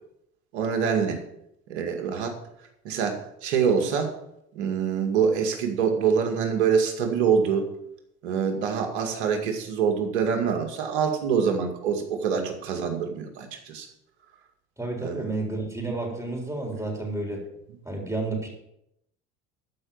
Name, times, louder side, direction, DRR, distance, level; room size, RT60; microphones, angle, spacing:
voice 1, 0.5-1.2 1.7-2.4 2.8-4.1 4.5-7.7 8.2-13.9 15.0-15.2, right 6 dB, 85° right, 4 dB, 2.1 m, -25 dB
voice 2, 14.8-17.4 17.8-18.5, right 2 dB, 10° right, 0 dB, 3.9 m, -31 dB
13.0 x 5.2 x 7.1 m, 0.80 s
supercardioid pair, 80°, 32 cm